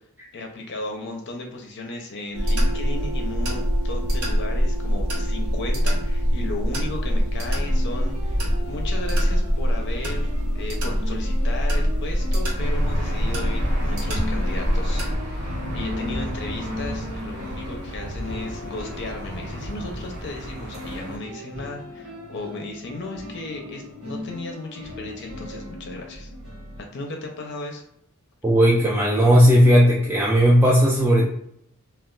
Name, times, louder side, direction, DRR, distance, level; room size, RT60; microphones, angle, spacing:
voice 1, 0.3-26.3 26.9-27.8, left 2 dB, 55° left, 2 dB, 0.5 m, -35 dB
sound 1, 2.3-15.1, equal, 90° right, 0.9 m, -24 dB
sound 2, 7.3-26.8, left 1 dB, 75° right, 1.2 m, -38 dB
Aircraft / Engine, 12.6-21.2, equal, 50° right, 0.8 m, -33 dB
voice 2, 28.4-31.3, equal, 10° right, -5 dB, 0.3 m, -16 dB
2.2 x 2.2 x 3.7 m, 0.73 s
head